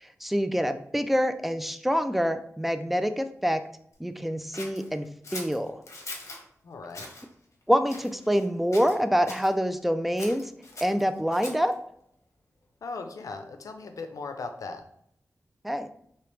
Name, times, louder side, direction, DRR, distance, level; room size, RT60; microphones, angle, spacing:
voice 1, 0.2-3.6 4.0-5.1 5.3-5.8 7.7-10.4 10.8-11.7 15.6-15.9, equal, 5° right, 9 dB, 0.3 m, -26 dB
Scissors, 4.5-6.4 6.9-7.2 7.8-8.5 8.7-9.5 10.2-11.7, left 2 dB, 60° left, 0.8 m, -42 dB
voice 2, 6.6-7.1 12.8-14.9, left 3 dB, 80° left, 6 dB, 0.4 m, -38 dB
3.1 x 2.8 x 3.1 m, 0.69 s
wide cardioid pair, 70°, 6 cm